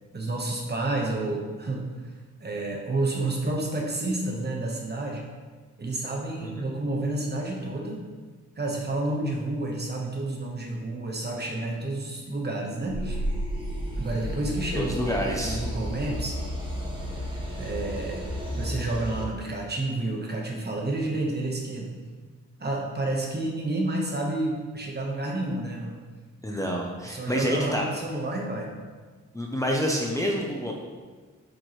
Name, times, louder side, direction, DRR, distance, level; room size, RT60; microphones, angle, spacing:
voice 1, 0.1-1.9 2.4-5.3 5.8-8.0 8.6-13.2 14.0-15.1 15.4-16.4 17.6-18.2 18.6-21.9 22.6-25.9 27.0-28.7, right 2 dB, 35° right, -1 dB, 1.1 m, -30 dB
sound 1, 12.9-19.2, equal, 15° right, 1.1 m, -32 dB
voice 2, 14.7-15.6 26.4-27.9 29.3-30.7, equal, 10° left, -2 dB, 0.6 m, -28 dB
7.8 x 4.6 x 3.1 m, 1.4 s
wide cardioid pair, 125°, 31 cm